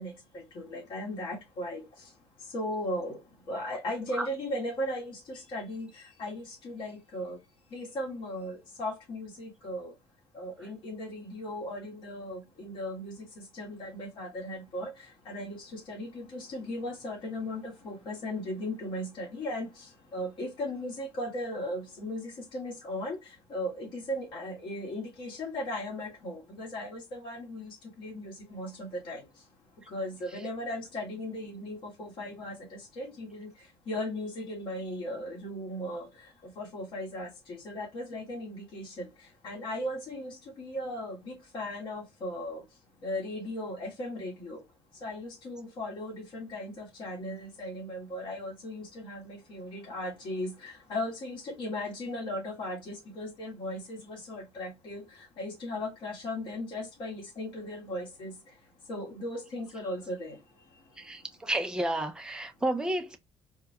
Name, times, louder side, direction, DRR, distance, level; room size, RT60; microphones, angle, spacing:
voice 1, 0.0-1.8 2.5-3.2 3.5-5.9 6.2-7.4 7.7-9.9 10.3-14.9 15.3-19.7 20.1-23.2 23.5-29.2 29.9-33.5 33.9-36.1 36.6-39.1 39.4-42.6 43.0-44.6 45.0-55.0 55.4-58.3 58.9-60.4, left 1 dB, 50° left, 1.8 m, -37 dB
voice 2, 61.0-63.2, right 1 dB, 10° right, 0.5 m, -31 dB
4.6 x 2.2 x 2.9 m
cardioid pair, 165°, 10 cm